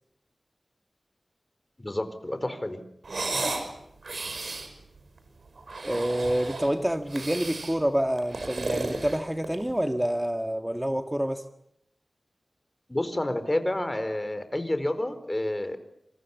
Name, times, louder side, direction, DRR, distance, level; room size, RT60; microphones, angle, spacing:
voice 1, 1.8-2.8 12.9-15.8, left 1 dB, 25° left, 10 dB, 4.6 m, -29 dB
sound 1, 3.0-3.7 4.0-4.7 5.6-6.7 7.1-7.8 8.2-9.7, right 3 dB, 85° right, 6.0 m, -33 dB
voice 2, 5.8-11.4, right 1 dB, 10° right, 6 dB, 1.7 m, -27 dB
28.0 x 28.0 x 7.3 m, 0.77 s
wide cardioid pair, 70°, 0 cm